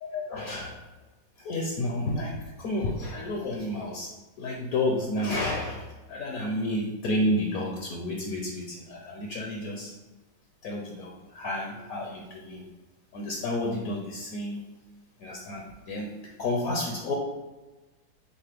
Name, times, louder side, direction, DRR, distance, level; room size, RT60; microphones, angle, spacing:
voice 1, 0.1-0.8 1.4-4.1 4.4-9.9 10.6-12.7 13.1-14.6 15.2-17.1, left 1 dB, 65° left, -1 dB, 1.0 m, -31 dB
6.4 x 2.1 x 3.4 m, 1.1 s
omnidirectional pair, 1.9 m